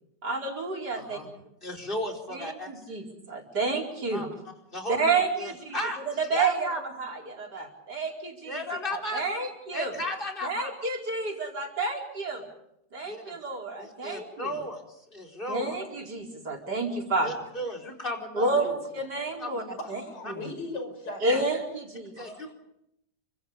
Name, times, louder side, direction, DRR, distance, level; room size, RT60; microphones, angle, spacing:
voice 1, 0.2-1.2 2.3-4.3 4.9-5.8 6.1-8.6 8.9-9.9 10.4-12.4 12.9-14.5 15.5-17.3 18.3-18.7 18.9-20.0 20.3-20.5 21.2-22.1, right 3 dB, 75° right, 1 dB, 5.1 m, -30 dB
voice 2, 0.9-1.3 1.6-2.8 4.1-4.3 4.7-5.0 5.4-6.0 6.3-6.8 8.4-9.2 9.7-10.7 13.0-13.4 13.8-15.8 17.2-18.6 19.4-19.8 20.2-20.3 22.2-22.5, left 1 dB, 30° left, 6 dB, 4.5 m, -35 dB
voice 3, 19.8-21.4 22.2-22.5, left 2 dB, 90° left, 6 dB, 5.9 m, -38 dB
29.5 x 25.0 x 5.3 m, 0.80 s
omnidirectional pair, 1.8 m